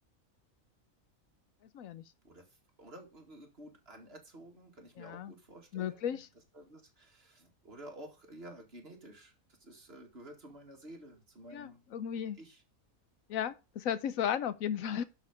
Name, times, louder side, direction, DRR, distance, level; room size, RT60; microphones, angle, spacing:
voice 1, 2.8-6.2 6.5-11.8 12.4-12.6, right 1 dB, 45° right, 2.3 m, -52 dB
voice 2, 5.0-5.3 5.7-6.3 11.5-12.4 13.3-15.0, left 9 dB, 75° left, 1.1 m, -35 dB
11.5 x 4.6 x 5.2 m
omnidirectional pair, 1.4 m